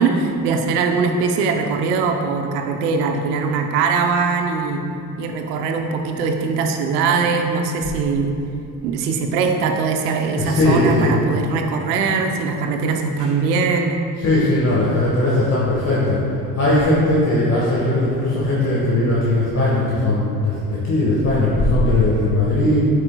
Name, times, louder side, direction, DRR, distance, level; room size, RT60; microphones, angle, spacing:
voice 1, 0.0-4.8 5.2-8.4 8.8-14.0, right 4 dB, 85° right, 4 dB, 0.7 m, -21 dB
voice 2, 10.3-11.1 13.2-13.3 14.1-22.8, left 1 dB, 35° left, -7 dB, 1.4 m, -19 dB
8.6 x 4.9 x 2.2 m, 2.6 s
hypercardioid pair, 60°, 46 cm